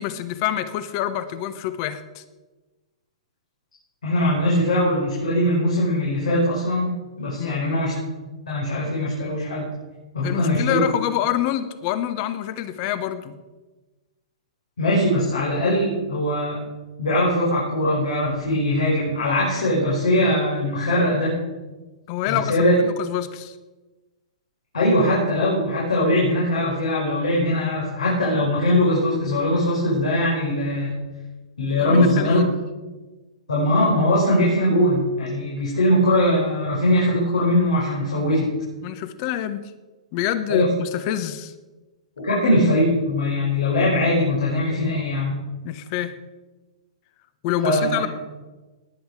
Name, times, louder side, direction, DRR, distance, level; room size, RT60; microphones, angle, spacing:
voice 1, 0.0-2.2 7.4-7.6 10.2-13.4 22.1-23.5 31.8-32.4 38.8-39.7 40.1-41.5 45.6-46.1 47.4-48.1, left 11 dB, 40° left, 13 dB, 1.2 m, -27 dB
voice 2, 4.0-8.0 8.5-9.7 10.1-10.8 14.8-16.6 17.0-21.4 22.3-22.7 24.7-30.9 31.6-32.4 33.5-38.5 40.5-40.7 42.2-45.4 47.6-48.0, left 1 dB, 90° left, -6 dB, 5.3 m, -21 dB
19.0 x 8.3 x 4.9 m, 1.2 s
hypercardioid pair, 135°, 4 cm